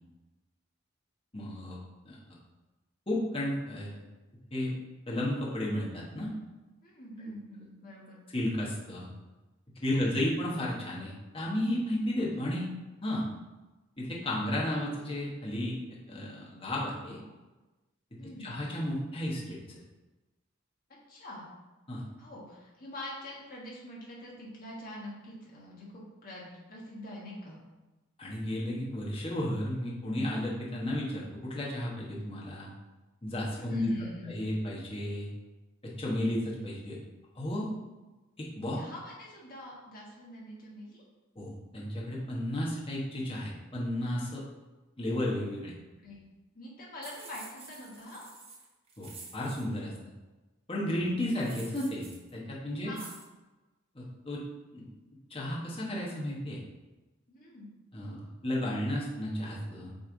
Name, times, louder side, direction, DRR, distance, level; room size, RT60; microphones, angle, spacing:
voice 1, 1.3-1.8 2.0-2.4 3.1-4.0 4.5-4.7 5.1-6.3 8.3-9.1 9.8-12.7 13.0-13.2 14.0-15.8 16.1-17.2 18.4-19.6 21.9-22.0 28.2-32.7 33.2-33.9 34.3-35.3 36.0-37.0 37.4-37.7 38.4-38.8 41.3-44.4 45.0-45.7 49.0-49.9 50.7-52.0 52.3-52.9 53.9-54.4 54.7-54.8 55.3-56.6 57.9-59.9, left 1 dB, 25° left, -5 dB, 1.3 m, -33 dB
voice 2, 6.8-8.2 9.9-10.1 18.2-18.6 21.1-21.5 22.2-27.6 33.5-34.3 38.7-41.0 46.0-46.2 46.5-48.3 52.8-53.1 57.3-57.7, left 1 dB, 45° left, -4 dB, 1.5 m, -45 dB
sound 1, 47.0-49.6 51.3-52.3 52.9-53.3, right 4 dB, 30° right, 1.0 m, -49 dB
8.0 x 3.4 x 4.0 m, 1.1 s
head